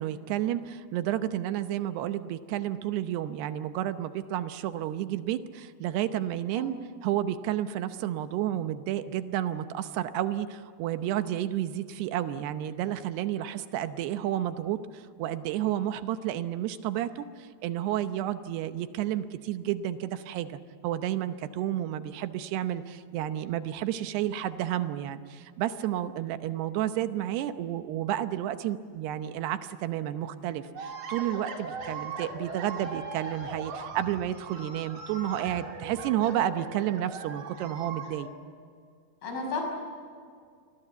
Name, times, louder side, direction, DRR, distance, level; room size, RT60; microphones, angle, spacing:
voice 1, 0.0-38.3, right 12 dB, 80° right, 10 dB, 2.9 m, -31 dB
sound 1, 30.7-38.3, right 4 dB, 50° right, 3.8 m, -39 dB
voice 2, 39.2-39.6, left 4 dB, 60° left, 1 dB, 7.7 m, -33 dB
28.0 x 21.5 x 8.0 m, 2.1 s
omnidirectional pair, 4.7 m